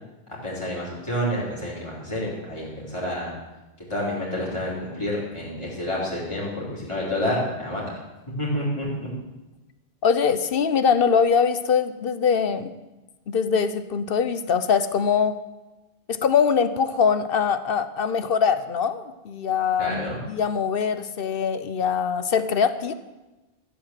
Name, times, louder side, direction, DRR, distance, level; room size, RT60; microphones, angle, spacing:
voice 1, 0.4-3.3 3.9-7.9 8.4-9.1 19.8-20.2, left 1 dB, 30° left, -6 dB, 3.7 m, -29 dB
voice 2, 10.0-12.7 13.3-15.3 16.1-22.9, left 6 dB, 65° left, 12 dB, 0.9 m, -22 dB
13.5 x 8.0 x 7.5 m, 1.1 s
omnidirectional pair, 1.1 m